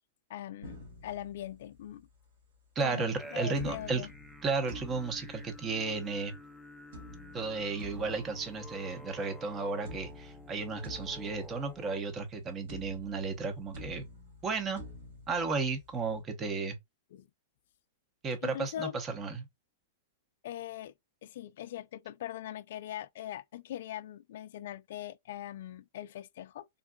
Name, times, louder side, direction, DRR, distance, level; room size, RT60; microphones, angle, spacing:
voice 1, 0.3-2.1 2.8-4.1 17.1-17.3 18.4-19.0 20.4-20.9 21.2-26.7, left 12 dB, 65° left, 0.3 m, -41 dB
sound 1, 0.6-2.2 3.6-6.2 6.9-9.5 9.9-12.4 12.7-16.2, left 1 dB, 70° right, 2.0 m, -49 dB
voice 2, 2.8-4.1 4.4-6.3 7.3-14.0 14.4-14.8 15.3-16.8 18.2-19.5, right 4 dB, 25° right, 0.8 m, -33 dB
sound 2, 3.2-12.0, left 1 dB, 5° right, 0.5 m, -51 dB
3.7 x 2.3 x 2.2 m
hypercardioid pair, 130°, 0 cm